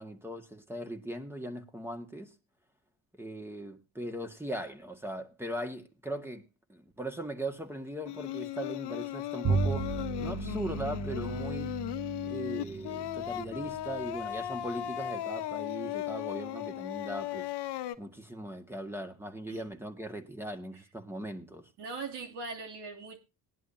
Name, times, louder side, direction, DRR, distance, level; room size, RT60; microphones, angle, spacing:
voice 1, 0.0-2.3 3.2-6.4 6.7-11.7 12.2-17.5 18.0-21.7, right 1 dB, 5° right, 1.9 m, -39 dB
Singing, 8.0-18.0, left 12 dB, 70° left, 1.1 m, -37 dB
Bowed string instrument, 9.4-15.1, right 4 dB, 40° right, 1.6 m, -35 dB
voice 2, 21.8-23.2, right 4 dB, 70° right, 3.0 m, -40 dB
19.5 x 11.0 x 2.8 m
cardioid pair, 90°, 42 cm